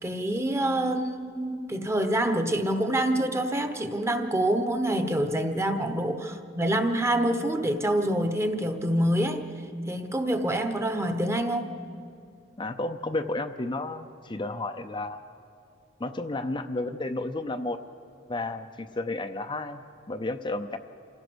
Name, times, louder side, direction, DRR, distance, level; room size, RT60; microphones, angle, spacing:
voice 1, 0.0-9.5 9.9-11.7, right 1 dB, 15° right, 8 dB, 1.0 m, -26 dB
voice 2, 12.6-15.2 16.0-17.8 18.3-20.8, left 2 dB, 25° left, 6 dB, 0.6 m, -32 dB
27.5 x 16.5 x 6.3 m, 2.5 s
head